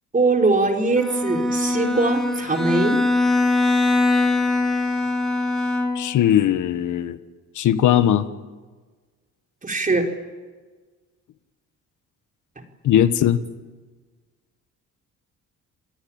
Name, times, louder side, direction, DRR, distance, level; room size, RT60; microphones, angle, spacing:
voice 1, 0.1-3.0 9.6-10.1, right 3 dB, 25° right, 3 dB, 4.6 m, -21 dB
Bowed string instrument, 1.0-6.3, left 2 dB, ahead, 6.5 m, -22 dB
voice 2, 5.9-7.2 7.5-8.3 12.8-13.4, left 11 dB, 80° left, 11 dB, 1.6 m, -19 dB
29.0 x 18.5 x 8.9 m, 1.4 s
cardioid pair, 90°, 30 cm